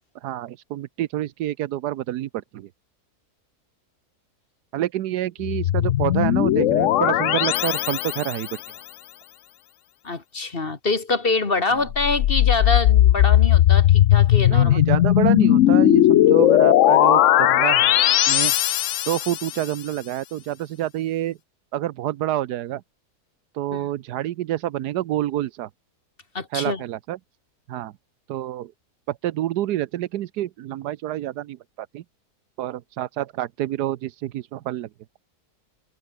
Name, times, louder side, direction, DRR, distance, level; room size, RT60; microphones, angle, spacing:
voice 1, 0.2-2.7 4.7-8.5 14.5-18.5 19.1-21.4 21.7-22.8 23.5-25.7 26.5-27.2 27.7-27.9 28.3-28.7 29.1-32.0 32.6-34.9, right 13 dB, 85° right, 1.3 m, -28 dB
sound 1, 5.4-8.6 11.9-19.5, left 13 dB, 65° left, 0.8 m, -17 dB
voice 2, 10.0-14.8 23.7-23.9 26.3-26.8, left 3 dB, 35° left, 2.0 m, -25 dB
omnidirectional pair, 1.7 m